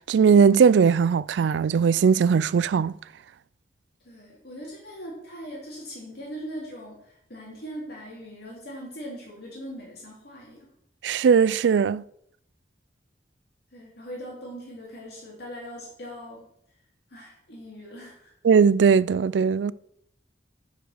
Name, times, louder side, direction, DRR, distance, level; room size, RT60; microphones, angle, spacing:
voice 1, 0.1-2.9 11.0-12.0 18.4-19.7, right 6 dB, 80° right, 0.3 m, -19 dB
voice 2, 4.0-10.7 13.7-16.4 17.1-18.3, equal, 65° left, 2.7 m, -40 dB
9.9 x 4.9 x 6.4 m
head